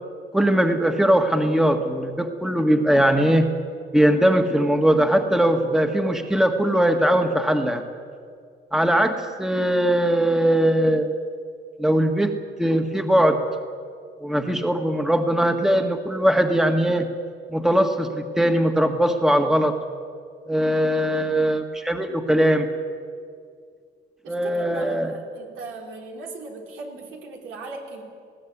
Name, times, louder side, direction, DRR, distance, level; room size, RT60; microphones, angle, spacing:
voice 1, 0.3-3.5 3.9-7.8 8.7-11.1 11.8-12.3 12.6-13.4 14.2-17.1 17.5-19.7 20.5-22.7 24.3-25.1, right 1 dB, ahead, 5 dB, 1.6 m, -20 dB
voice 2, 24.2-28.0, right 3 dB, 90° right, 0 dB, 4.0 m, -37 dB
19.5 x 16.0 x 9.5 m, 2.2 s
cardioid pair, 90°, 20 cm